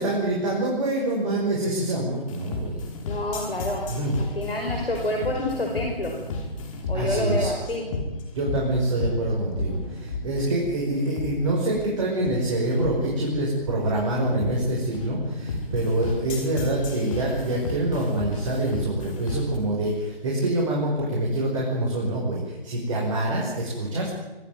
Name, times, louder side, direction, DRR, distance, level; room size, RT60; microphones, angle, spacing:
voice 1, 0.0-2.8 3.9-4.1 6.9-7.5 8.3-24.1, right 1 dB, 30° right, -3 dB, 5.7 m, -25 dB
sound 1, 2.3-19.6, left 3 dB, 35° left, 5.6 m, -33 dB
voice 2, 3.0-3.9 4.2-6.1 6.9-7.9, left 1 dB, 75° left, 2 dB, 5.5 m, -28 dB
25.0 x 16.5 x 9.4 m, 1.1 s
figure-of-eight pair, 145°, 30 cm